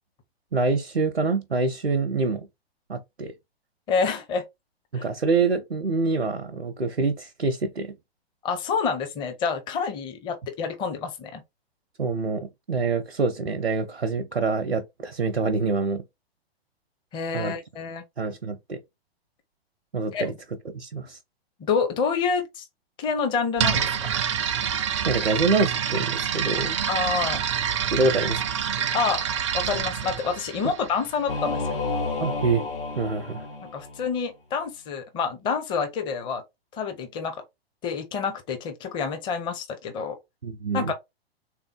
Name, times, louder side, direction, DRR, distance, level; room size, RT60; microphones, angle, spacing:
voice 1, 0.5-2.5 2.9-3.3 4.9-8.0 12.0-16.0 17.3-17.5 18.2-18.8 19.9-20.3 20.7-21.2 25.0-26.8 27.9-28.4 32.2-32.6 33.0-33.5 40.4-40.9, right 3 dB, 85° right, 0.6 m, -26 dB
voice 2, 3.9-4.4 4.9-5.1 8.4-11.4 17.1-18.0 20.1-20.3 21.6-22.7 23.0-23.9 26.9-27.5 28.9-29.2 29.5-31.8 33.7-36.4 36.7-37.4 37.8-40.2 40.7-40.9, left 5 dB, 15° left, 0.6 m, -28 dB
sound 1, 23.6-31.4, right 8 dB, 30° right, 0.4 m, -27 dB
Singing / Musical instrument, 31.3-34.1, left 3 dB, 60° left, 1.0 m, -30 dB
3.4 x 2.8 x 3.7 m
figure-of-eight pair, 110°, 31 cm